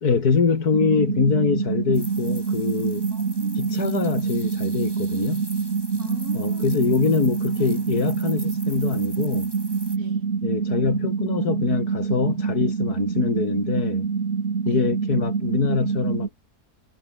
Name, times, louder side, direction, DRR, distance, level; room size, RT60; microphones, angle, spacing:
voice 1, 0.0-3.1 3.5-5.4 6.3-9.5 10.4-14.1 14.6-16.3, left 5 dB, 80° left, 2.9 m, -24 dB
sound 1, 0.7-16.3, right 5 dB, 45° right, 1.9 m, -26 dB
sound 2, 1.9-10.0, right 1 dB, 15° right, 5.6 m, -44 dB
voice 2, 3.1-3.8 6.0-6.9 9.9-10.3 14.6-14.9, right 2 dB, 70° right, 7.4 m, -40 dB
omnidirectional pair, 1.6 m